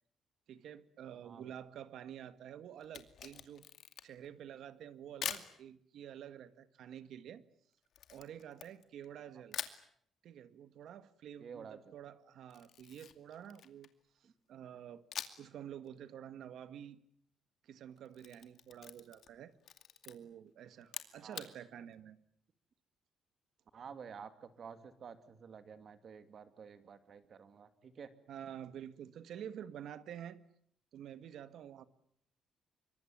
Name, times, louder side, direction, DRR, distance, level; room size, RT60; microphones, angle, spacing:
voice 1, 0.5-3.6 4.0-7.4 8.1-9.6 10.2-13.9 14.5-15.0 15.4-17.0 17.6-19.5 20.0-22.2 28.3-30.4 30.9-31.8, right 9 dB, 65° right, 13 dB, 1.7 m, -49 dB
voice 2, 1.2-1.5 11.4-11.9 14.2-14.3 21.2-21.5 23.7-28.1, right 6 dB, 40° right, 10 dB, 2.5 m, -51 dB
Camera, 2.8-4.3 5.2-5.5 7.9-9.1 9.5-9.8 12.5-14.0 15.1-15.5 15.9-16.0 18.0-19.4 19.6-20.1 20.8-21.5, left 9 dB, 55° left, 2.3 m, -44 dB
26.5 x 24.0 x 8.9 m, 0.66 s
cardioid pair, 155°, 0 cm